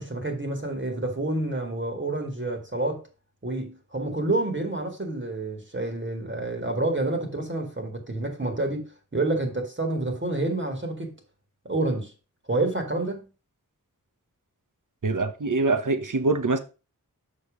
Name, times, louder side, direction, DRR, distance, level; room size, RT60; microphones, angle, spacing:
voice 1, 0.0-3.0 3.4-11.1 11.7-12.1 12.5-13.3, right 2 dB, 35° right, 2.0 m, -28 dB
voice 2, 15.0-16.6, right 3 dB, 65° right, 1.1 m, -24 dB
6.4 x 5.3 x 5.1 m
wide cardioid pair, 60°, 33 cm